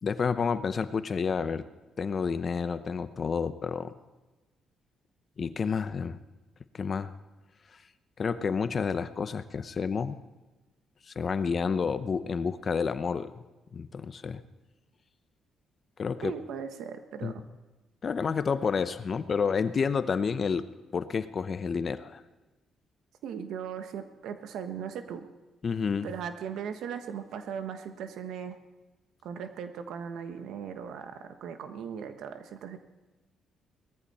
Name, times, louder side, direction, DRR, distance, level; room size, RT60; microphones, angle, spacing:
voice 1, 0.0-1.7 2.0-3.9 5.4-6.2 6.7-7.1 7.7-7.8 8.2-10.2 11.1-13.3 13.7-14.4 16.0-16.3 17.2-17.3 18.0-22.2 25.6-26.1, left 5 dB, 45° left, 13 dB, 0.8 m, -30 dB
voice 2, 16.2-17.4 23.2-25.3 26.0-28.6 29.2-32.8, right 7 dB, 80° right, 8 dB, 1.3 m, -38 dB
19.0 x 14.0 x 4.2 m, 1.1 s
cardioid pair, 90°, 0 cm